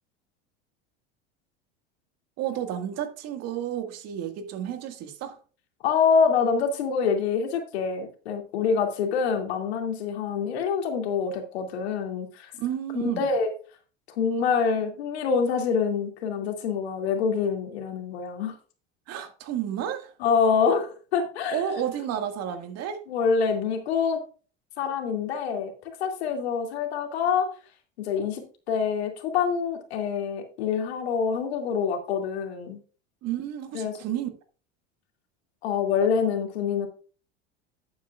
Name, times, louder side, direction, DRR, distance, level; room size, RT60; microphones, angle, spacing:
voice 1, 2.4-5.4 12.6-13.3 19.1-20.1 21.5-23.0 33.2-34.3, right 10 dB, 55° right, 1.9 m, -31 dB
voice 2, 5.8-12.5 12.9-13.5 14.2-18.5 20.2-21.6 23.1-24.2 24.8-25.7 26.0-27.5 28.0-28.4 28.7-32.8 33.7-34.0 35.6-36.9, left 6 dB, 85° left, 2.5 m, -26 dB
11.5 x 8.8 x 2.4 m
supercardioid pair, 100°, 31 cm